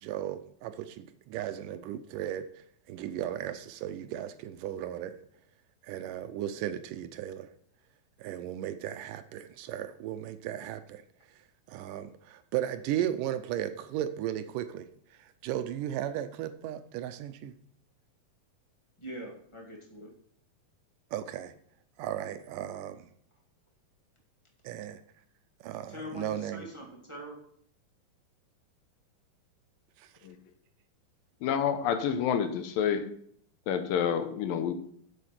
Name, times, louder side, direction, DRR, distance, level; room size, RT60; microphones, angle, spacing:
voice 1, 0.0-5.2 5.8-7.5 8.2-11.0 11.3-17.5 21.1-21.5 22.0-23.1 24.6-25.0 25.6-26.7 30.0-30.1, right 11 dB, 80° right, 2.1 m, -36 dB
voice 2, 19.0-20.1 25.9-27.4, equal, 25° left, 0.6 m, -43 dB
voice 3, 31.4-33.1 33.7-34.7, left 8 dB, 80° left, 2.6 m, -28 dB
8.2 x 7.0 x 5.8 m
omnidirectional pair, 4.0 m